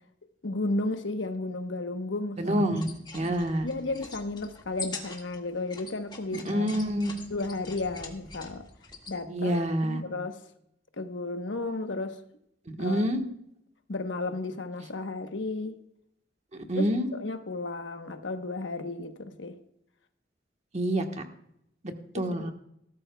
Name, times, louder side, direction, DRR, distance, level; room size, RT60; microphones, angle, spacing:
voice 1, 0.4-2.6 3.6-6.8 7.3-8.7 9.1-10.4 11.0-12.2 12.8-13.0 13.9-15.8 16.7-16.9 17.1-19.6 22.1-22.5, left 2 dB, 85° left, 1.1 m, -33 dB
voice 2, 2.4-3.7 6.3-7.2 9.3-10.0 12.7-13.2 16.5-17.1 20.7-21.0 21.8-22.5, right 1 dB, 40° right, 1.3 m, -27 dB
sound 1, 2.7-9.2, left 3 dB, 25° left, 1.8 m, -44 dB
19.0 x 13.0 x 2.3 m
head